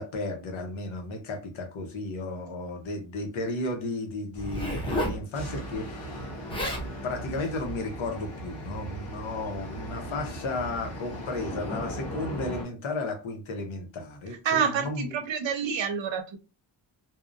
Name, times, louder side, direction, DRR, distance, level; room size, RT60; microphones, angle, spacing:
voice 1, 0.0-6.3 7.0-15.1, left 2 dB, 80° left, 0.9 m, -34 dB
Zipper (clothing), 4.3-5.2 6.2-6.3 6.5-6.9 7.6-7.8, equal, 10° left, 0.6 m, -31 dB
sound 1, 5.3-12.6, right 1 dB, 30° left, 1.2 m, -38 dB
voice 2, 14.4-16.4, right 7 dB, 70° right, 0.6 m, -28 dB
2.7 x 2.1 x 2.5 m
wide cardioid pair, 155°, 47 cm